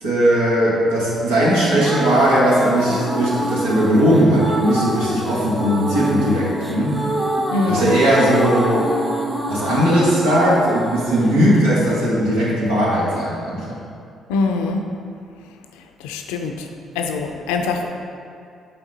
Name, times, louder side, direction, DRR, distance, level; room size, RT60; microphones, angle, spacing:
voice 1, 0.0-7.1 7.7-8.9 9.5-13.8, equal, 85° right, -6 dB, 1.5 m, -18 dB
sound 1, 1.5-12.5, equal, 10° right, 1.2 m, -26 dB
voice 2, 7.5-7.9 14.3-14.8 16.0-16.7 16.9-17.9, left 4 dB, 85° left, 4 dB, 0.5 m, -23 dB
7.4 x 4.2 x 4.0 m, 2.4 s
hypercardioid pair, 50°, 0 cm